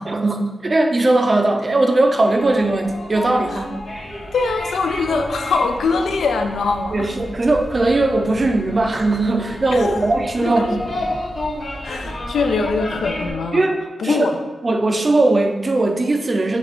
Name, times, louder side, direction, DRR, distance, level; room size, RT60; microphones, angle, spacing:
voice 1, 0.1-3.7 6.9-10.9 13.5-14.3 14.6-16.6, right 2 dB, 35° right, 5 dB, 0.4 m, -19 dB
sound 1, 1.9-13.3, left 1 dB, 50° left, 0.8 m, -31 dB
voice 2, 4.3-7.1 9.7-10.1 10.4-10.5 11.8-13.7 14.0-14.3, left 4 dB, 80° left, 6 dB, 0.3 m, -22 dB
3.9 x 2.3 x 4.5 m, 1.2 s
wide cardioid pair, 100°, 0 cm